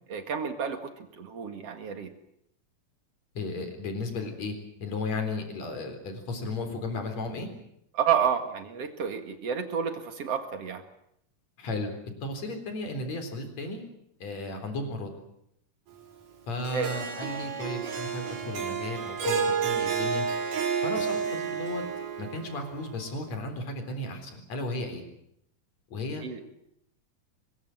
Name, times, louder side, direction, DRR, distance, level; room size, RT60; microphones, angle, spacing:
voice 1, 0.1-2.1 7.9-10.8 16.7-16.9 26.2-26.4, right 7 dB, 55° right, 7 dB, 2.7 m, -30 dB
voice 2, 3.3-4.5 4.8-7.5 11.6-13.8 14.2-15.1 16.5-20.3 20.8-21.8 22.2-25.0 25.9-26.2, left 2 dB, 55° left, 6 dB, 5.0 m, -34 dB
Harp, 16.6-23.0, right 6 dB, 80° right, 5.2 m, -31 dB
24.5 x 21.0 x 7.7 m, 0.75 s
omnidirectional pair, 3.7 m